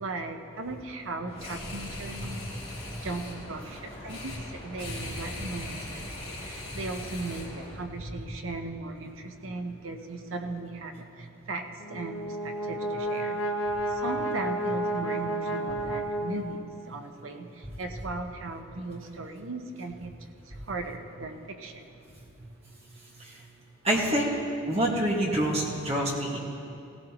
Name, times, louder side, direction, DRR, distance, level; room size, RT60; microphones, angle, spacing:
voice 1, 0.0-13.4 13.9-20.1 20.4-21.9, right 3 dB, 75° right, 5 dB, 0.9 m, -37 dB
sound 1, 1.3-7.7, left 1 dB, 25° left, 2.7 m, -40 dB
Brass instrument, 11.8-16.9, right 1 dB, 75° left, 0.9 m, -31 dB
voice 2, 23.8-24.3 24.7-26.4, right 1 dB, 30° right, -2 dB, 1.6 m, -27 dB
17.0 x 16.0 x 3.0 m, 2.7 s
head